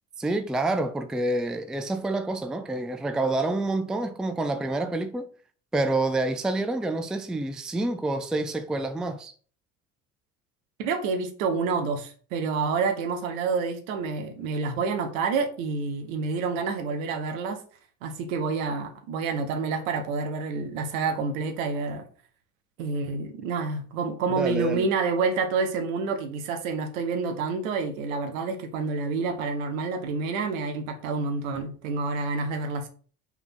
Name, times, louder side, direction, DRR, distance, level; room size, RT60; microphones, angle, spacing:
voice 1, 0.2-5.3 5.7-9.3 24.4-24.9, right 2 dB, ahead, 0.5 m, -28 dB
voice 2, 10.8-17.6 18.0-22.0 22.8-32.9, right 4 dB, 60° right, 1.5 m, -28 dB
5.8 x 4.1 x 6.1 m
figure-of-eight pair, 60°, 44 cm